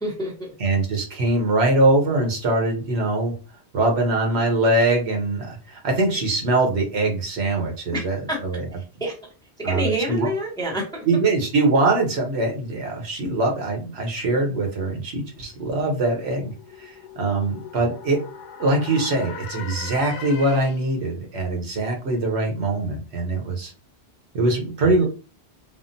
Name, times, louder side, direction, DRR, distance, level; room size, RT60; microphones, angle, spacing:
voice 1, 0.0-0.5 7.9-8.4 9.0-9.1 9.6-11.0 25.0-25.1, right 1 dB, 5° left, -2 dB, 0.6 m, -27 dB
voice 2, 0.6-3.3 3.7-8.2 8.4-8.6 9.6-10.3 11.1-16.5 16.8-18.2 18.6-23.7 24.3-25.0, right 2 dB, 75° right, 1 dB, 1.1 m, -22 dB
sound 1, 15.0-21.0, left 7 dB, 85° left, 0.9 m, -40 dB
3.6 x 2.1 x 2.6 m, 0.34 s
omnidirectional pair, 1.1 m